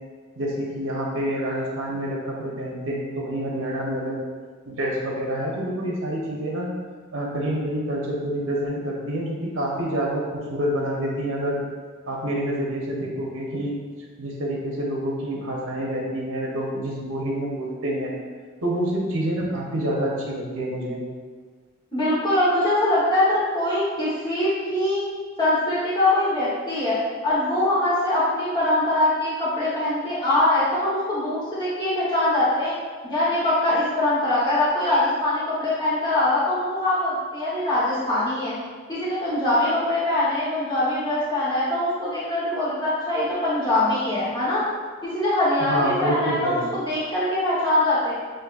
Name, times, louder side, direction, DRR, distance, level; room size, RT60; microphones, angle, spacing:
voice 1, 0.4-4.2 4.7-6.7 7.1-11.6 12.1-13.7 14.2-18.2 18.6-21.0 45.6-46.7, right 1 dB, 80° right, -2 dB, 1.1 m, -27 dB
voice 2, 21.9-25.0 25.4-32.7 33.0-38.5 38.9-44.6 45.0-48.1, left 1 dB, 20° left, -10 dB, 1.1 m, -23 dB
7.5 x 2.7 x 2.5 m, 1.6 s
head